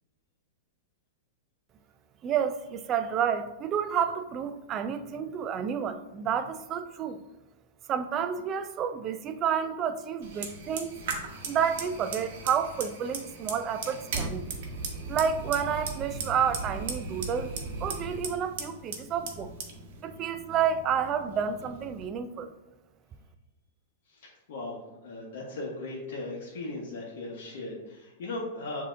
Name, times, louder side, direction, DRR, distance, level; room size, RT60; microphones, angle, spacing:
voice 1, 2.2-7.2 7.9-11.0 11.5-14.5 15.1-17.5 17.8-19.5 20.0-22.5, right 7 dB, 35° right, 10 dB, 0.4 m, -30 dB
Fire, 10.2-22.1, right 4 dB, 65° right, 0.9 m, -38 dB
voice 2, 24.1-28.8, left 2 dB, 65° left, -4 dB, 1.0 m, -38 dB
7.1 x 2.8 x 2.5 m, 1.0 s
hypercardioid pair, 115°, 0 cm